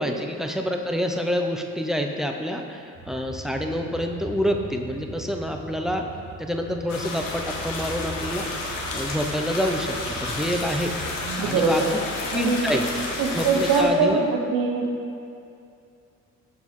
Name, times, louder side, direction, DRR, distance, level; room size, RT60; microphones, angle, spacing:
voice 1, 0.0-6.0 6.4-11.0 11.4-11.8 12.3-12.9 13.3-14.3, equal, ahead, 3 dB, 0.5 m, -27 dB
sound 1, 3.0-11.2, right 1 dB, 60° right, 1.5 m, -40 dB
sound 2, 6.9-13.8, left 2 dB, 80° left, 1.0 m, -31 dB
voice 2, 11.2-11.9 12.3-12.7 13.2-14.9, right 4 dB, 75° right, 2 dB, 0.8 m, -23 dB
6.2 x 5.4 x 3.1 m, 2.5 s
supercardioid pair, 60°, 33 cm